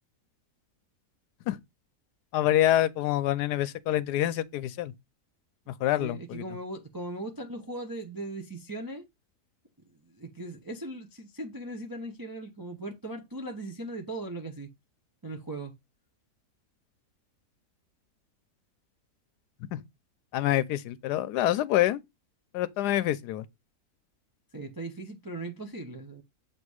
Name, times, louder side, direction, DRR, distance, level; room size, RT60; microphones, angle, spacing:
voice 1, 2.3-4.9 5.7-6.4 19.7-19.8 20.3-22.0 22.5-23.4, left 13 dB, 90° left, 1.2 m, -26 dB
voice 2, 5.7-9.1 10.0-14.7 15.2-15.7 24.5-26.2, right 2 dB, 30° right, 0.4 m, -39 dB
7.3 x 2.7 x 4.7 m
omnidirectional pair, 1.7 m